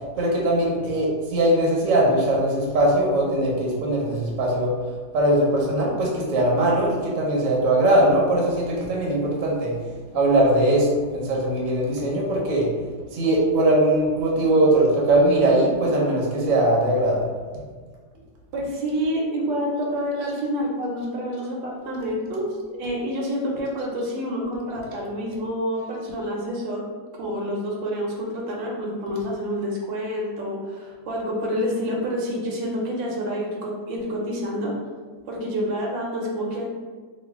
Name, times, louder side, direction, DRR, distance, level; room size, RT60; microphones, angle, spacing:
voice 1, 0.2-4.7 5.1-9.7 10.1-10.9 11.1-12.7 13.1-17.2, right 1 dB, 60° right, -3 dB, 1.0 m, -20 dB
voice 2, 18.5-26.8 27.2-34.7 35.3-36.7, equal, 80° right, -1 dB, 1.3 m, -28 dB
3.0 x 2.3 x 3.4 m, 1.5 s
omnidirectional pair, 2.0 m